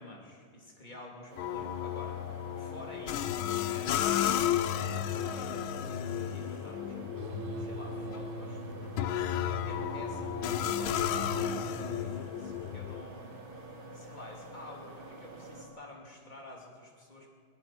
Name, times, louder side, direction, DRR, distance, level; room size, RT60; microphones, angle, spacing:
voice 1, 0.0-7.3 7.6-13.4 13.9-17.3, left 1 dB, 20° left, -1 dB, 3.0 m, -50 dB
sound 1, 1.3-15.6, right 2 dB, 85° right, 3.8 m, -47 dB
sound 2, 1.4-13.0, left 11 dB, 80° left, 1.5 m, -33 dB
sound 3, 7.2-12.1, right 6 dB, 30° right, 1.3 m, -42 dB
21.0 x 21.0 x 6.1 m, 2.1 s
omnidirectional pair, 2.2 m